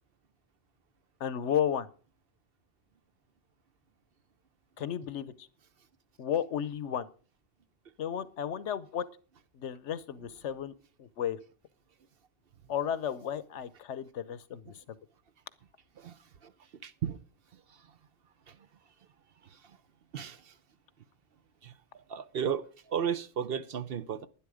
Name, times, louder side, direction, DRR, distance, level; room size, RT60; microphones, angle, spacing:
voice 1, 1.2-1.9 4.8-5.5 6.2-7.1 8.0-9.1 9.5-10.7 11.0-11.4 12.7-14.7, left 9 dB, 80° left, 1.1 m, -33 dB
voice 2, 16.8-17.2 20.1-20.4 21.6-21.7 22.1-24.3, right 8 dB, 60° right, 0.9 m, -34 dB
11.5 x 10.5 x 4.9 m
omnidirectional pair, 1.2 m